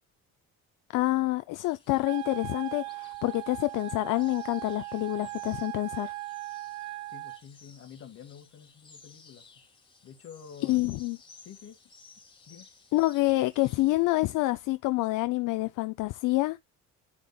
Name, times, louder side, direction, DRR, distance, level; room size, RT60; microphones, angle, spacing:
voice 1, 0.9-6.1 10.6-11.2 12.9-16.6, left 19 dB, 70° left, 0.5 m, -27 dB
sound 1, 1.6-14.1, left 4 dB, 15° left, 2.9 m, -57 dB
Wind instrument woodwind instrument, 2.0-7.4, right 21 dB, 60° right, 0.6 m, -39 dB
voice 2, 7.1-9.4 10.0-10.9 11.4-11.7 12.5-12.7, left 8 dB, 45° left, 1.8 m, -48 dB
11.0 x 5.0 x 2.3 m
cardioid pair, 165°, 33 cm